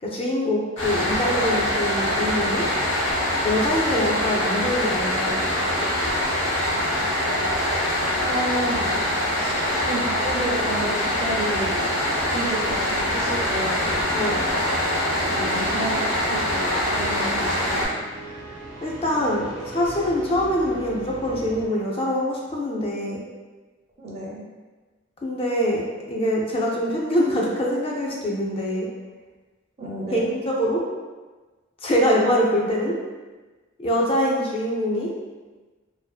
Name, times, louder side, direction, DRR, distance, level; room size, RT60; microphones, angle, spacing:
voice 1, 0.0-2.7 3.4-5.4 14.1-14.4 18.8-23.2 25.2-28.9 30.1-30.8 31.8-32.9 33.8-35.1, equal, 30° left, -3 dB, 0.4 m, -24 dB
sound 1, 0.8-17.9, left 1 dB, 80° left, 0.8 m, -24 dB
voice 2, 8.2-9.0 9.4-9.6 9.8-11.9 12.3-13.9 15.3-17.8 24.0-24.4 29.8-30.3, right 1 dB, 35° right, -4 dB, 0.5 m, -31 dB
sound 2, 12.6-21.7, right 2 dB, 70° right, 0.7 m, -40 dB
2.5 x 2.4 x 2.3 m, 1.3 s
head